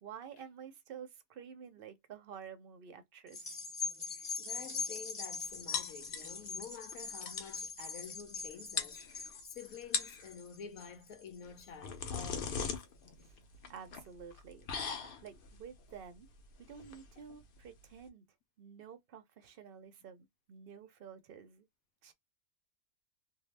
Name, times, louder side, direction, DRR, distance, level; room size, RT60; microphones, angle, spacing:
voice 1, 0.0-3.6 13.2-13.3 13.7-14.7 15.2-16.3 16.6-18.2 18.6-21.6 22.0-22.1, right 7 dB, 60° right, 0.6 m, -50 dB
sound 1, 3.3-11.9 12.4-12.5, left 4 dB, 30° left, 1.2 m, -42 dB
voice 2, 4.1-12.7, left 7 dB, 80° left, 1.0 m, -50 dB
sound 2, 5.7-6.6 6.9-7.0 7.2-7.6 8.4-8.5 8.8-9.4 9.8-10.3 11.4-18.1, left 6 dB, 55° left, 0.6 m, -40 dB
2.7 x 2.1 x 3.2 m
omnidirectional pair, 1.5 m